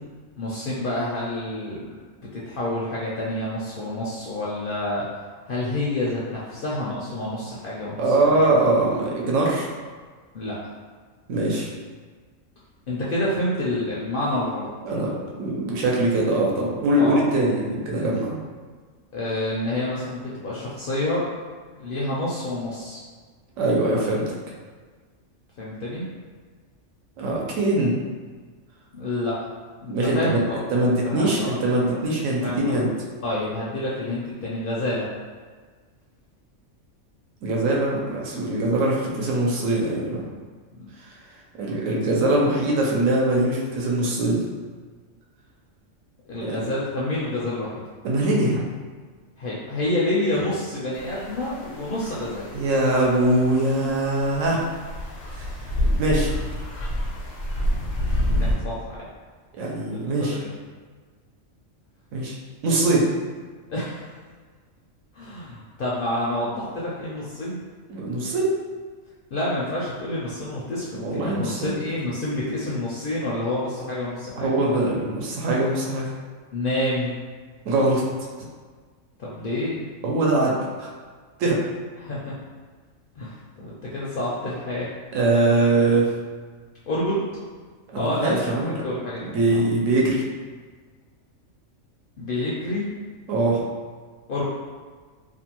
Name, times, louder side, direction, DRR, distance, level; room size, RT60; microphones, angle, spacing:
voice 1, 0.4-1.9 2.3-5.1 5.5-8.0 8.3-8.4 10.3-10.7 12.9-14.7 17.0-17.3 19.1-21.3 21.8-23.0 25.6-26.1 28.9-29.4 29.8-31.6 31.9-32.0 32.4-32.8 33.2-35.1 38.5-38.6 40.7-40.9 46.3-47.8 49.4-52.4 58.4-59.1 59.9-60.5 63.7-64.0 65.1-67.6 69.3-74.5 76.5-77.2 79.2-79.8 82.0-82.3 83.2-84.9 86.9-87.2 87.9-89.4 92.2-92.9 94.3-94.4, left 1 dB, 65° left, -7 dB, 0.5 m, -28 dB
voice 2, 8.0-9.7 11.3-11.7 14.8-15.1 15.4-18.4 23.6-24.2 27.2-28.0 29.9-32.9 37.4-40.3 41.0-41.1 41.6-44.4 46.4-46.7 48.0-48.7 52.5-54.6 55.3-55.5 56.0-56.3 59.6-60.4 62.1-62.4 62.6-63.1 67.9-68.5 71.0-71.7 74.4-76.1 77.7-78.0 80.0-80.9 81.4-81.6 85.1-86.1 87.9-88.7 89.2-90.2 93.3-93.6, right 2 dB, 80° right, -3 dB, 1.0 m, -22 dB
sound 1, 50.9-58.6, equal, 90° left, 1.0 m, -28 dB
2.6 x 2.2 x 2.9 m, 1.5 s
omnidirectional pair, 1.3 m